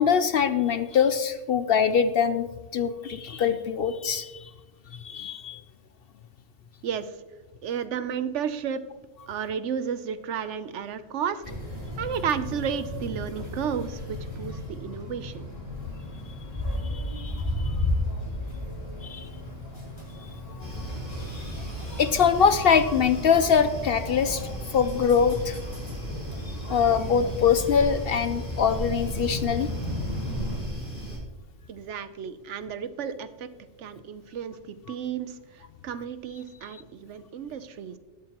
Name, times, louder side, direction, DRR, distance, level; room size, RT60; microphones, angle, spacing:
voice 1, 0.0-2.5 2.7-4.5 5.0-5.6 16.9-17.7 19.0-19.3 21.3-21.4 22.0-25.6 26.7-29.7, left 7 dB, 60° left, 11 dB, 0.6 m, -23 dB
voice 2, 6.8-7.2 7.6-8.8 9.3-11.4 12.0-15.5 31.7-33.5 33.8-34.6 34.9-38.0, right 7 dB, 70° right, 12 dB, 1.0 m, -32 dB
sound 1, 11.4-30.6, left 1 dB, 30° left, 4.2 m, -35 dB
sound 2, 20.6-31.2, right 1 dB, 10° right, 4.1 m, -36 dB
19.0 x 7.6 x 2.9 m, 1.2 s
omnidirectional pair, 1.3 m